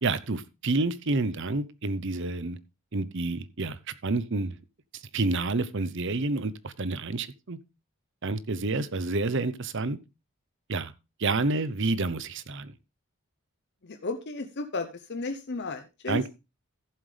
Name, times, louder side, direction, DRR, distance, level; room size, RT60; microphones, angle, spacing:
voice 1, 0.0-2.6 2.9-4.6 4.9-7.6 8.2-10.0 10.7-10.9 11.2-12.7 16.1-16.3, right 3 dB, 55° right, 0.8 m, -29 dB
voice 2, 13.8-16.2, left 3 dB, 50° left, 0.8 m, -34 dB
14.5 x 7.6 x 3.3 m
head